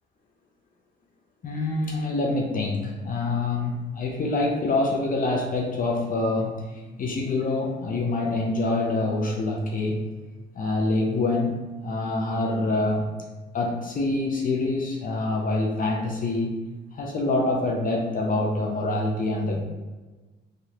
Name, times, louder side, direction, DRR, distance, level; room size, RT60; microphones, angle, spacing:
voice 1, 1.4-10.0 10.6-13.1 13.5-16.6 16.9-19.6, left 2 dB, 45° left, 0 dB, 0.6 m, -26 dB
3.2 x 2.4 x 2.8 m, 1.2 s
cardioid pair, 90°, 20 cm